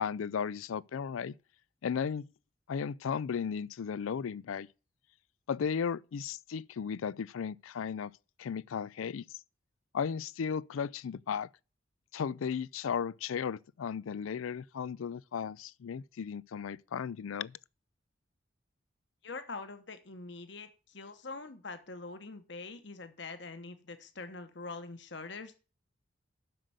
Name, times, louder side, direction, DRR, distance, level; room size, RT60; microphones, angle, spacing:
voice 1, 0.0-1.3 1.8-2.3 2.7-4.7 5.5-8.1 8.4-9.2 9.9-11.5 12.1-17.6, left 7 dB, 90° left, 0.4 m, -35 dB
voice 2, 19.2-25.5, left 3 dB, 60° left, 1.0 m, -44 dB
7.7 x 6.6 x 7.7 m
head